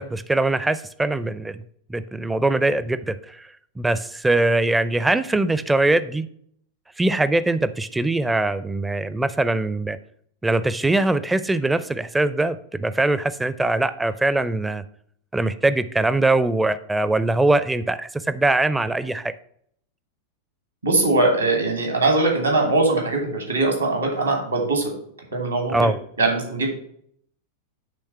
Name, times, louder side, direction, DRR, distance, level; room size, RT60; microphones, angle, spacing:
voice 1, 0.0-1.6 1.9-3.5 3.8-6.3 7.0-10.0 10.4-14.8 15.3-19.3 25.7-26.0, right 2 dB, 10° right, 14 dB, 0.4 m, -22 dB
voice 2, 20.8-24.9 25.3-25.9 26.2-26.7, right 2 dB, 80° right, 2 dB, 2.5 m, -21 dB
8.3 x 3.4 x 5.7 m, 0.66 s
figure-of-eight pair, 90°, 0 cm